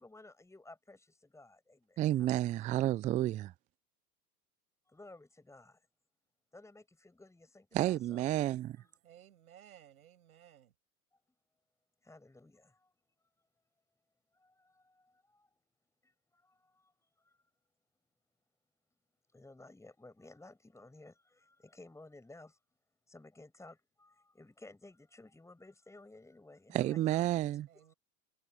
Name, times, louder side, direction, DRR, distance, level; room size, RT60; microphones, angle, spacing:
voice 1, 0.0-2.3 4.9-5.9 6.5-8.3 12.0-12.9 14.3-15.7 16.0-16.9 17.2-17.4 19.3-22.6 23.1-27.3 27.7-27.9, left 2 dB, 5° left, 6.6 m, -56 dB
voice 2, 2.0-3.5 7.7-8.8 26.7-27.7, right 14 dB, 20° right, 0.4 m, -31 dB
voice 3, 9.0-10.7 27.7-27.9, right 10 dB, 75° right, 6.7 m, -58 dB
hypercardioid pair, 95°, 44 cm